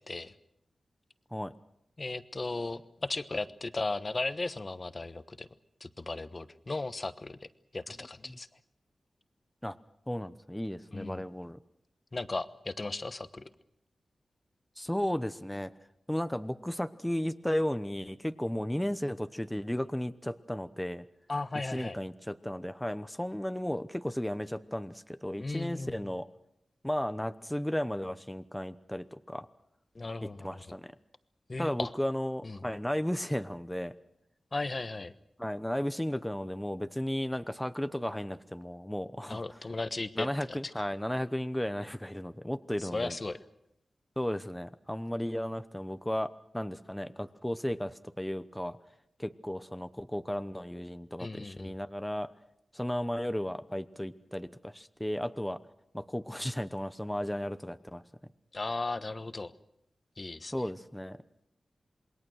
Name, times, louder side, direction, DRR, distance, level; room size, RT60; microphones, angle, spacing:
voice 1, 2.0-5.5 5.8-7.5 7.7-8.5 10.9-11.2 12.1-13.5 21.3-22.0 25.4-26.0 29.9-30.6 31.5-31.9 32.4-32.6 34.5-35.1 39.3-40.6 42.8-43.4 51.2-51.7 58.5-59.5 60.2-60.5, left 2 dB, 40° left, 13 dB, 1.1 m, -36 dB
voice 2, 10.1-11.6 14.8-15.7 16.1-21.0 21.7-26.3 26.8-29.5 30.4-30.9 31.6-33.9 35.4-39.6 40.2-43.2 44.2-48.8 49.2-52.3 52.7-55.6 55.9-58.0 60.5-61.2, equal, 5° left, 12 dB, 0.9 m, -34 dB
27.5 x 21.0 x 6.4 m, 0.78 s
wide cardioid pair, 75°, 0 cm